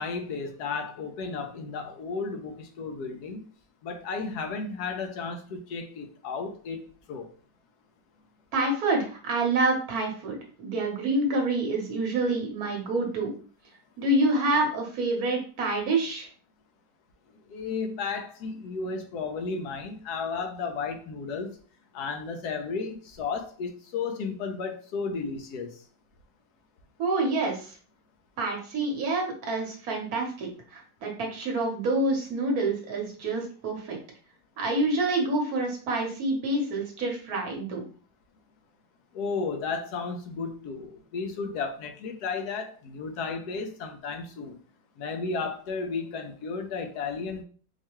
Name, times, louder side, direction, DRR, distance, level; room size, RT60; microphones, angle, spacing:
voice 1, 0.0-3.4 3.8-6.8 7.1-7.3 17.5-21.5 21.9-25.8 39.1-44.6 45.0-47.4, left 4 dB, 70° left, 5 dB, 1.0 m, -33 dB
voice 2, 8.5-13.3 14.0-16.3 27.0-27.8 28.4-34.0 34.6-37.8, right 2 dB, 55° right, 1 dB, 1.3 m, -27 dB
4.6 x 2.2 x 3.0 m, 0.40 s
omnidirectional pair, 2.1 m